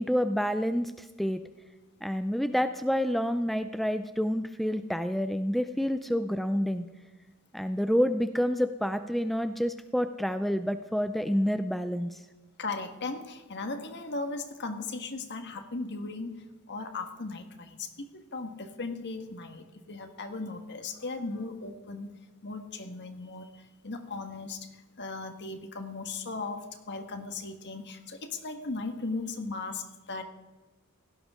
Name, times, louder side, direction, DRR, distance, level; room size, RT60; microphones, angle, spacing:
voice 1, 0.0-1.4 2.0-6.8 7.5-12.2, equal, ahead, 9 dB, 0.4 m, -28 dB
voice 2, 12.6-22.2 22.4-30.2, left 3 dB, 50° left, 6 dB, 1.5 m, -37 dB
17.0 x 16.5 x 3.7 m, 1.2 s
head